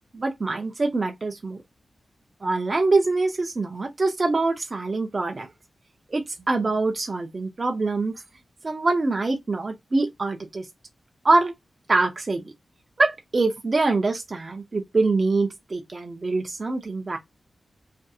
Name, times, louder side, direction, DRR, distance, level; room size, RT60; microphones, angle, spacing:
voice 1, 0.1-1.6 2.4-5.5 6.1-8.1 8.6-10.7 11.2-11.5 11.9-12.4 13.0-17.2, right 3 dB, 40° right, 0.5 m, -24 dB
2.6 x 2.5 x 2.3 m
wide cardioid pair, 110°, 0 cm